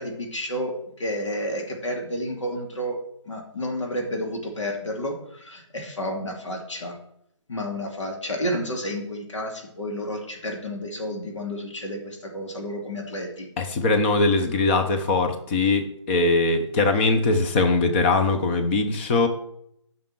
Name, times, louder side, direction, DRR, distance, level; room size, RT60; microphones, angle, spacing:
voice 1, 0.0-3.0 3.3-7.0 7.5-13.5, equal, 70° left, 1 dB, 2.6 m, -31 dB
voice 2, 13.6-19.3, left 3 dB, 20° left, 6 dB, 1.0 m, -21 dB
7.1 x 6.0 x 7.6 m, 0.72 s
figure-of-eight pair, 155°, 16 cm